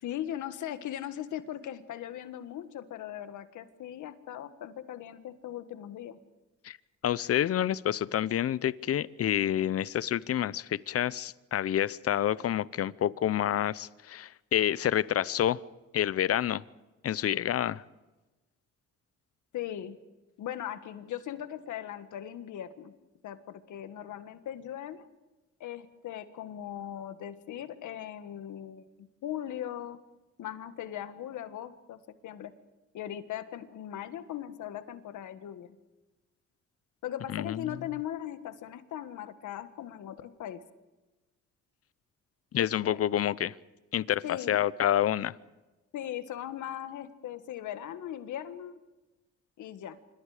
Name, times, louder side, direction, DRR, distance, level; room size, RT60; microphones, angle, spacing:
voice 1, 0.0-6.2 19.5-20.0 20.4-22.9 23.2-25.1 25.6-30.0 30.4-32.5 32.9-35.8 37.0-40.6 42.8-43.0 44.2-44.7 45.9-48.8 49.6-50.0, left 11 dB, 75° left, 11 dB, 1.7 m, -39 dB
voice 2, 7.0-15.6 15.9-16.6 17.0-17.8 37.3-37.6 42.5-43.5 43.9-45.3, left 11 dB, 50° left, 19 dB, 0.7 m, -28 dB
26.0 x 24.5 x 5.0 m, 1.1 s
cardioid pair, 90°, 30 cm